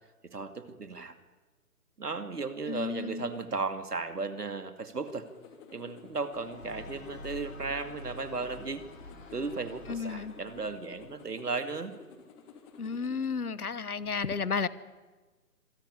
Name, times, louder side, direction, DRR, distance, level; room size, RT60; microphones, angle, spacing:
voice 1, 0.2-1.1 2.0-5.3 5.7-8.8 9.3-11.9, right 4 dB, 80° right, 9 dB, 2.4 m, -35 dB
voice 2, 2.7-3.3 9.9-10.3 12.8-14.7, left 5 dB, 70° left, 17 dB, 1.5 m, -32 dB
sound 1, 5.1-13.4, left 5 dB, 20° left, 2.8 m, -52 dB
sound 2, 6.3-11.2, left 2 dB, 55° left, 4.7 m, -48 dB
26.0 x 17.0 x 9.7 m, 1.3 s
figure-of-eight pair, 145°, 46 cm